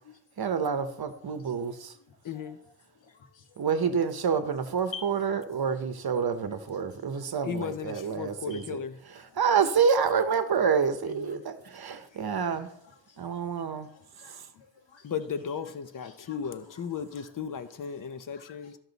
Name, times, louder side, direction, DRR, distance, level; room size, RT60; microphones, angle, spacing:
voice 1, 0.4-1.9 3.6-8.8 9.4-12.7 13.2-13.9, right 6 dB, 55° right, 0.9 m, -28 dB
voice 2, 1.5-1.8 2.4-2.5 3.2-3.4 3.8-3.9 4.9-5.1 6.0-6.1 7.1-7.3 8.5-8.7 12.1-12.6 12.9-13.0 14.2-15.0 16.0-16.6 17.2-17.3 18.3-18.8, left 5 dB, 85° left, 1.5 m, -48 dB
voice 3, 2.2-2.6 7.4-9.0 11.1-11.4 15.0-18.8, left 7 dB, 45° left, 0.6 m, -35 dB
13.5 x 6.1 x 4.0 m
wide cardioid pair, 180°, 44 cm